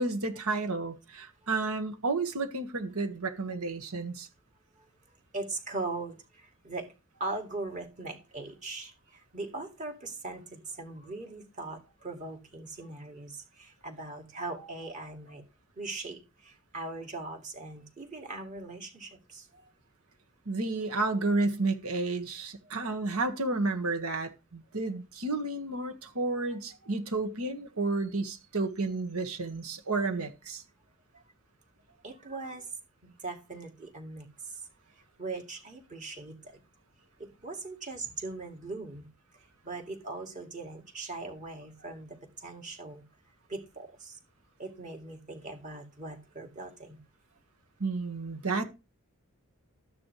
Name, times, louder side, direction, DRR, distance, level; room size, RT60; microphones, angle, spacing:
voice 1, 0.0-4.3 20.5-30.6 47.8-48.6, right 3 dB, 90° right, 1.8 m, -31 dB
voice 2, 5.3-15.4 15.8-19.7 26.5-26.9 31.1-31.2 32.0-32.7 33.0-34.3 35.2-36.6 37.4-39.1 39.6-43.0 43.5-44.2 44.6-47.0, right 3 dB, 35° right, 2.4 m, -40 dB
13.0 x 9.6 x 3.3 m
head